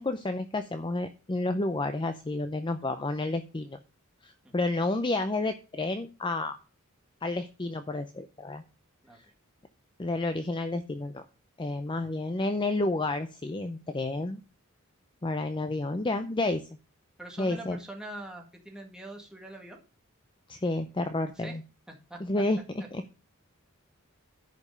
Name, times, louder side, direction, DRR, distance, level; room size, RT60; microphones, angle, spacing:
voice 1, 0.0-3.8 4.2-6.6 7.2-8.6 10.0-11.2 11.6-14.4 15.2-16.6 17.4-17.8 20.5-21.6 22.2-22.6 22.9-23.0, left 2 dB, 20° left, 9 dB, 0.5 m, -30 dB
voice 2, 17.2-19.8 21.4-21.6 21.9-22.2, right 1 dB, 5° right, 1 dB, 1.9 m, -43 dB
11.0 x 5.2 x 6.6 m, 0.33 s
head